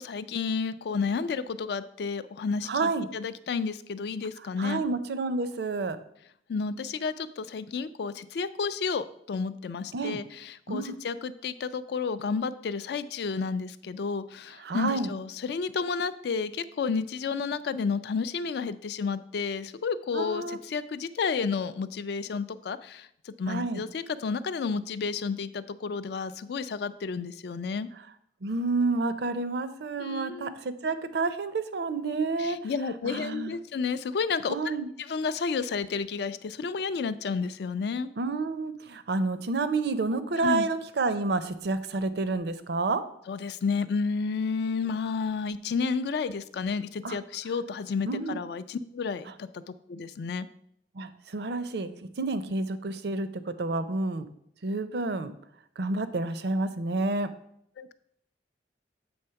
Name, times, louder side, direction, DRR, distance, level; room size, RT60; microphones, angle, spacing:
voice 1, 0.0-4.8 6.5-27.9 30.0-30.6 32.4-38.1 40.4-40.7 43.3-50.5 57.8-57.9, left 5 dB, 60° left, 14 dB, 0.3 m, -31 dB
voice 2, 2.7-3.1 4.6-6.0 9.9-10.2 10.7-10.9 14.6-15.1 20.1-20.6 23.5-23.8 28.4-32.6 33.1-33.5 34.5-34.9 38.2-43.0 47.0-47.2 48.0-48.4 51.0-51.9 52.2-53.3 53.6-54.3 54.6-55.3 55.8-57.3, right 3 dB, 60° right, 12 dB, 0.5 m, -29 dB
7.9 x 3.4 x 5.6 m, 0.73 s
head